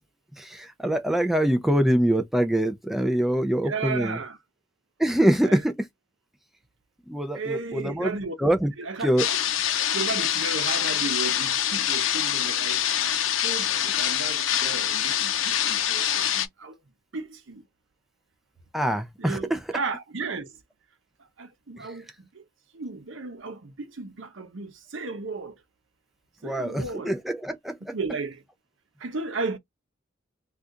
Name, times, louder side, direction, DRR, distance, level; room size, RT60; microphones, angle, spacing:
voice 1, 0.4-4.2 5.0-5.7 7.1-8.1 8.4-8.7 9.0-9.3 18.7-19.6 26.4-27.9, right 1 dB, ahead, 0.4 m, -24 dB
voice 2, 3.6-4.4 5.4-5.6 7.3-8.4 8.8-9.4 9.7-12.9 13.4-16.8 17.1-17.6 18.8-20.6 21.4-22.4 22.7-25.6 26.4-27.1 27.9-28.4 29.0-29.6, right 4 dB, 75° right, 0.7 m, -34 dB
sound 1, 9.2-16.5, left 10 dB, 80° left, 0.6 m, -25 dB
2.7 x 2.4 x 3.4 m
head